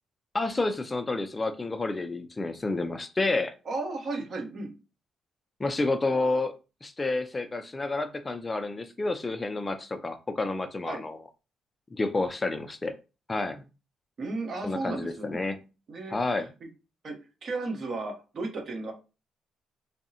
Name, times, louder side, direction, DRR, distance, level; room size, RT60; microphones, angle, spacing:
voice 1, 0.3-3.5 5.6-6.5 6.8-11.2 11.9-12.9 13.3-13.6 14.6-15.6 16.1-16.5, left 2 dB, 20° left, 9 dB, 0.3 m, -29 dB
voice 2, 3.7-4.7 10.9-11.0 14.2-15.4 15.9-16.2 16.6-16.7 17.0-17.1 17.4-18.9, right 3 dB, 50° right, 3 dB, 0.9 m, -34 dB
3.4 x 2.0 x 2.7 m, 0.31 s
cardioid pair, 90°, 0 cm